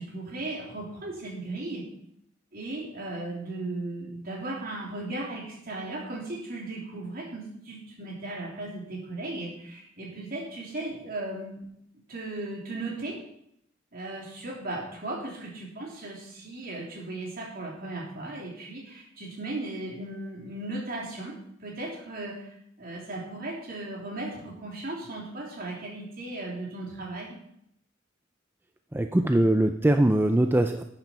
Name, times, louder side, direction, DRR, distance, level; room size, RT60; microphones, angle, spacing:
voice 1, 0.0-1.8 2.5-11.7 12.1-13.2 13.9-21.4 21.6-22.4 22.8-27.4, right 2 dB, 50° right, -2 dB, 3.2 m, -36 dB
voice 2, 28.9-30.8, right 1 dB, 10° right, 6 dB, 0.4 m, -22 dB
12.5 x 8.8 x 4.5 m, 0.76 s
head